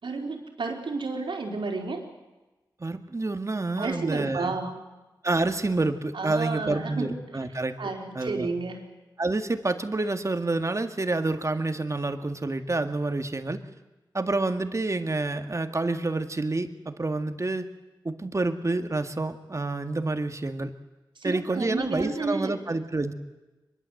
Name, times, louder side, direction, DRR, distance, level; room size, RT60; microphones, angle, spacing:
voice 1, 0.0-2.0 3.8-4.8 6.1-7.2 7.8-8.8 21.2-22.5, right 3 dB, 80° right, 2 dB, 4.1 m, -31 dB
voice 2, 2.8-4.6 5.2-7.8 8.2-8.5 9.2-13.6 14.1-17.7 18.0-20.7 21.2-23.1, right 2 dB, 35° right, 8 dB, 1.9 m, -28 dB
23.5 x 22.0 x 7.8 m, 1.1 s
cardioid pair, 60°, 8 cm